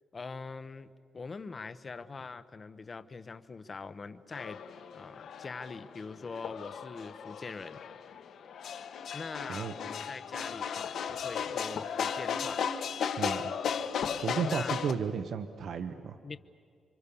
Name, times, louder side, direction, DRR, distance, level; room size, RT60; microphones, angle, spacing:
voice 1, 0.1-0.9 1.1-4.6 4.9-7.8 9.1-12.6 14.4-14.7 16.2-16.4, left 4 dB, 30° left, 13 dB, 0.9 m, -43 dB
sound 1, 4.3-14.9, left 7 dB, 70° left, 1.4 m, -36 dB
voice 2, 13.2-13.5 14.2-16.2, right 6 dB, 60° right, 9 dB, 1.0 m, -33 dB
30.0 x 25.5 x 7.0 m, 2.2 s
wide cardioid pair, 155°, 0 cm